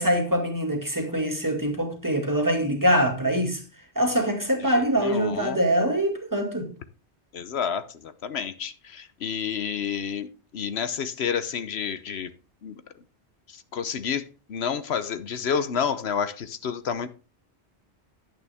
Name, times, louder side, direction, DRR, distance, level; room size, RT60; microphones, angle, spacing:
voice 1, 0.0-3.6 4.0-6.7, equal, 15° right, 2.2 m, -24 dB
voice 2, 5.0-5.6 7.3-12.3 12.6-12.8 13.5-17.1, left 7 dB, 75° left, 1.1 m, -30 dB
11.0 x 9.2 x 3.5 m
omnidirectional pair, 1.1 m